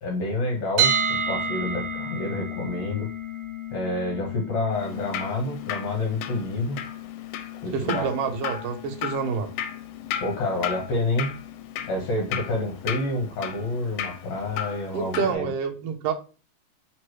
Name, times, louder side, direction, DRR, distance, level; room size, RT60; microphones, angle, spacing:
voice 1, 0.0-3.1 3.7-6.8 7.6-8.1 10.2-11.3 11.9-15.5, left 2 dB, 70° left, 2.1 m, -28 dB
sound 1, 0.8-12.7, right 3 dB, 60° right, 1.9 m, -32 dB
Drip, 4.7-15.3, left 9 dB, 85° left, 2.0 m, -35 dB
voice 2, 7.7-9.5 14.9-16.1, right 6 dB, 80° right, 1.4 m, -27 dB
4.5 x 3.0 x 3.0 m
omnidirectional pair, 3.4 m